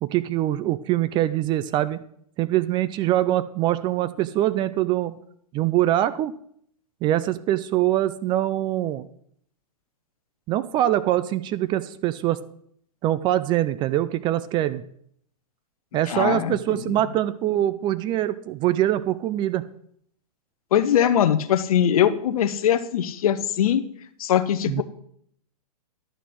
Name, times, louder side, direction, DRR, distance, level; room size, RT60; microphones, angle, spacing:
voice 1, 0.0-2.0 2.4-5.2 5.5-6.3 7.0-9.1 10.5-12.4 13.0-14.8 15.9-19.7 24.7-24.8, right 13 dB, 25° right, 14 dB, 0.4 m, -23 dB
voice 2, 16.1-16.9 20.7-23.8 24.2-24.8, left 10 dB, 65° left, 11 dB, 0.8 m, -21 dB
11.0 x 4.1 x 7.7 m, 0.67 s
hypercardioid pair, 115°, 20 cm